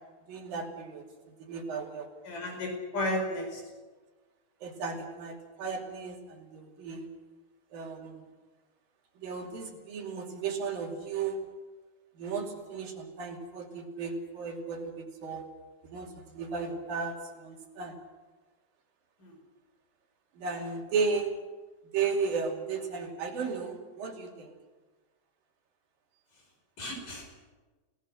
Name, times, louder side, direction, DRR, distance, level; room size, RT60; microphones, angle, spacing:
voice 1, 0.3-1.0 1.4-2.1 4.6-7.1 7.7-8.2 9.2-11.5 12.2-15.5 15.9-18.0 20.4-21.4 21.9-24.5, right 5 dB, 90° right, 1 dB, 4.5 m, -35 dB
voice 2, 2.2-3.6 19.2-19.4 26.8-27.3, left 1 dB, 70° left, 2 dB, 7.1 m, -33 dB
30.0 x 18.5 x 6.5 m, 1.3 s
omnidirectional pair, 3.9 m